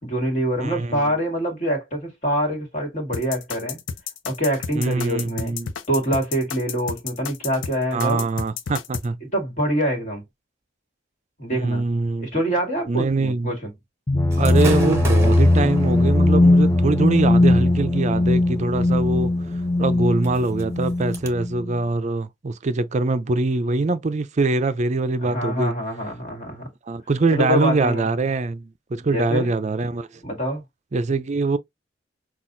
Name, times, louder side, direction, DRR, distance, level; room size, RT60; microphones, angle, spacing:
voice 1, 0.0-3.8 4.2-5.5 5.9-8.3 9.2-10.2 11.4-11.9 12.2-13.7 25.2-26.7 27.3-28.1 29.1-29.5 30.2-30.6, equal, 40° left, 1.8 m, -25 dB
voice 2, 0.6-1.0 4.7-5.7 7.9-9.2 11.6-12.3 12.9-13.5 14.4-19.3 19.8-25.8 26.9-30.1 30.9-31.6, right 3 dB, 35° right, 0.5 m, -23 dB
sound 1, 3.1-9.1, left 6 dB, 80° left, 0.6 m, -32 dB
sound 2, 14.1-21.7, left 2 dB, 20° left, 0.5 m, -19 dB
Gunshot gunfire / Fireworks, 14.3-21.3, right 2 dB, 15° right, 1.0 m, -37 dB
5.9 x 2.4 x 2.6 m
head